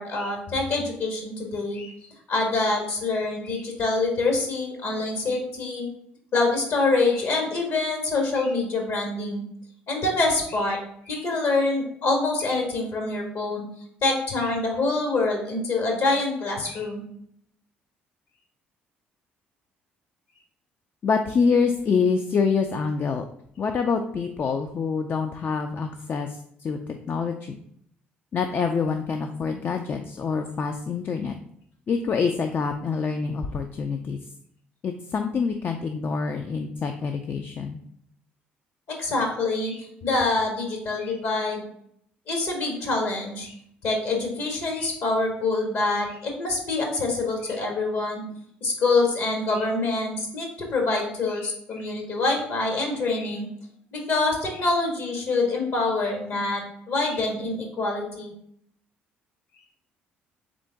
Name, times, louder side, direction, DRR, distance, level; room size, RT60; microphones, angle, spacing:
voice 1, 0.0-1.9 2.3-5.8 6.3-9.4 9.9-10.8 11.0-13.6 14.0-17.1 38.9-41.6 42.3-43.6 43.8-48.2 48.6-53.5 53.9-58.3, left 3 dB, 60° left, 2 dB, 1.4 m, -25 dB
voice 2, 21.0-23.2 23.6-27.6 28.3-31.4 31.9-34.2 34.8-37.8, left 5 dB, 45° left, 5 dB, 0.4 m, -26 dB
3.7 x 3.7 x 3.4 m, 0.70 s
hypercardioid pair, 55°, 5 cm